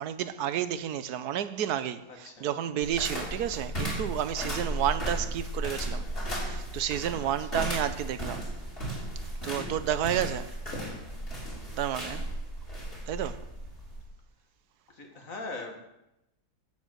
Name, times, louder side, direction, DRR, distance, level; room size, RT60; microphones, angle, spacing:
voice 1, 0.0-6.0 6.3-8.5 9.4-10.6 11.7-12.2 13.1-13.4, right 10 dB, 85° right, 1.3 m, -31 dB
voice 2, 2.1-2.5 3.6-3.7 5.9-6.1 7.2-7.6 9.7-9.8 14.9-15.8, left 3 dB, 60° left, 2.4 m, -42 dB
sound 1, 2.8-14.1, right 1 dB, 35° left, 4.0 m, -35 dB
12.5 x 7.5 x 7.9 m
omnidirectional pair, 1.6 m